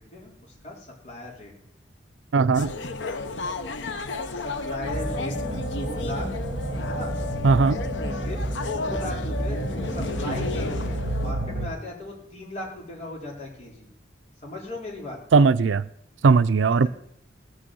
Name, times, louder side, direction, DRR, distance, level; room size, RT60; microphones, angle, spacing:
voice 1, 0.1-1.5 4.3-5.3 5.7-6.3 6.8-7.1 8.1-8.4 8.7-13.9 14.4-15.2, left 1 dB, 40° left, 4.0 m, -37 dB
voice 2, 2.3-2.8 7.4-7.8 15.3-15.9 16.2-16.9, right 4 dB, 85° right, 0.5 m, -18 dB
sound 1, 2.5-11.3, left 3 dB, 75° left, 0.9 m, -33 dB
sound 2, 4.8-11.7, right 1 dB, 30° right, 2.5 m, -30 dB
17.0 x 6.4 x 7.7 m
head